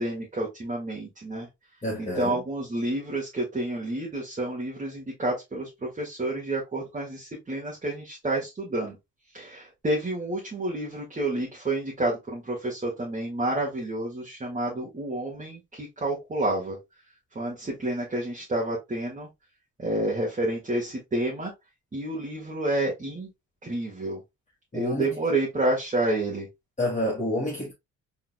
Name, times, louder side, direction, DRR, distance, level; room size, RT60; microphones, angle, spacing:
voice 1, 0.0-1.5 2.0-9.0 9.3-16.8 17.4-19.3 19.8-21.5 21.9-23.3 23.6-24.2 24.7-26.5, right 1 dB, 25° right, 2.0 m, -29 dB
voice 2, 1.8-2.4 24.7-25.1 26.8-27.7, left 1 dB, 25° left, 2.1 m, -28 dB
4.4 x 4.1 x 2.3 m
cardioid pair, 90°, 30 cm